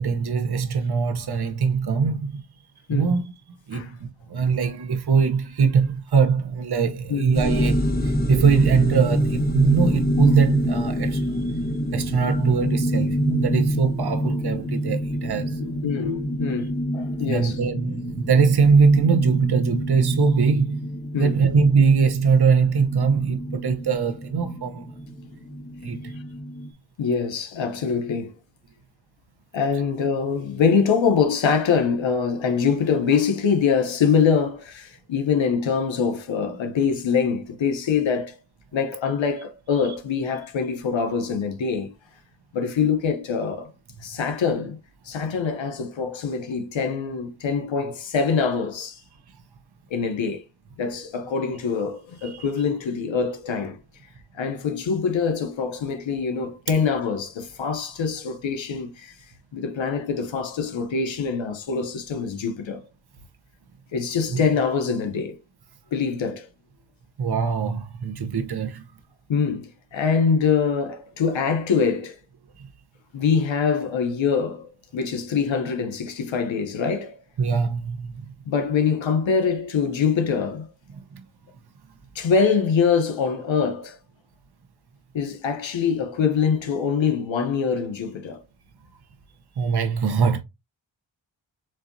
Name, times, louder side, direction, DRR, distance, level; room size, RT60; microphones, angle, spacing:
voice 1, 0.0-2.4 2.9-3.2 3.7-11.4 11.9-15.6 17.3-24.9 25.8-26.1 52.2-52.4 64.3-64.4 67.2-68.8 77.4-78.1 81.1-81.2 89.6-90.4, right 5 dB, 55° right, 1.0 m, -22 dB
sound 1, 7.3-26.7, equal, 20° left, 1.2 m, -27 dB
voice 2, 15.6-17.6 21.1-21.4 27.0-28.3 29.5-38.4 38.7-41.9 42.5-43.7 44.0-44.8 45.0-49.0 49.9-50.4 50.8-53.8 54.3-59.2 59.5-62.8 63.9-65.4 65.9-66.5 69.3-72.2 73.1-77.2 78.5-80.7 82.1-84.0 85.1-88.4, left 6 dB, 80° left, 0.8 m, -24 dB
7.4 x 2.7 x 2.6 m
wide cardioid pair, 85°, 45 cm